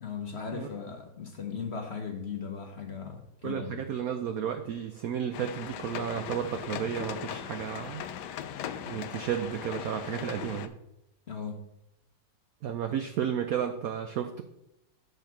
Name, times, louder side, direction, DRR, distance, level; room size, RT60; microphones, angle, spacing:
voice 1, 0.0-3.8 11.3-11.6, left 6 dB, 55° left, 3 dB, 0.7 m, -38 dB
voice 2, 3.4-8.1 8.8-10.7 12.6-14.4, right 9 dB, 90° right, 7 dB, 0.7 m, -32 dB
sound 1, 5.3-10.7, left 9 dB, 70° left, 1.0 m, -39 dB
7.9 x 4.6 x 5.9 m, 0.85 s
omnidirectional pair, 2.2 m